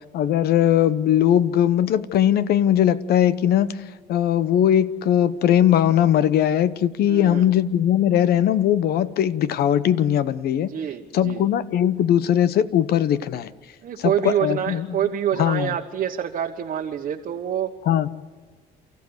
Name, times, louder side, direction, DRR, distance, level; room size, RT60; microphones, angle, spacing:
voice 1, 0.1-3.8 4.1-10.7 11.1-13.5 14.0-14.9 15.4-15.7 17.9-18.1, left 10 dB, 65° left, 15 dB, 1.0 m, -20 dB
voice 2, 7.1-7.5 10.7-11.4 13.8-17.7, right 9 dB, 50° right, 2 dB, 1.3 m, -26 dB
29.0 x 14.5 x 8.1 m, 1.4 s
cardioid pair, 110°, 17 cm